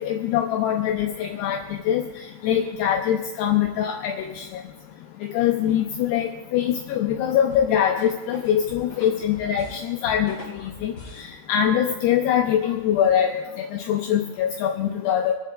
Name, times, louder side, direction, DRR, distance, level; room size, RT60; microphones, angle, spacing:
voice 1, 0.0-4.6 5.3-15.3, left 9 dB, 80° left, 3 dB, 2.5 m, -23 dB
sound 1, 7.5-11.3, left 2 dB, 30° left, 5.3 m, -41 dB
25.0 x 10.5 x 3.7 m, 1.1 s
omnidirectional pair, 5.7 m